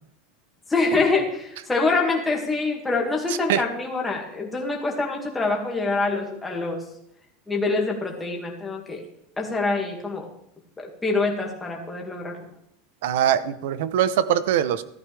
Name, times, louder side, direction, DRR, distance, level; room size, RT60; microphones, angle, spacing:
voice 1, 0.7-6.8 7.5-9.0 9.4-10.3 10.8-12.4, left 3 dB, 10° left, 0 dB, 2.0 m, -25 dB
voice 2, 3.3-3.6 13.0-14.8, right 10 dB, 65° right, 14 dB, 0.8 m, -22 dB
14.5 x 12.5 x 3.4 m, 0.77 s
supercardioid pair, 170°, 0 cm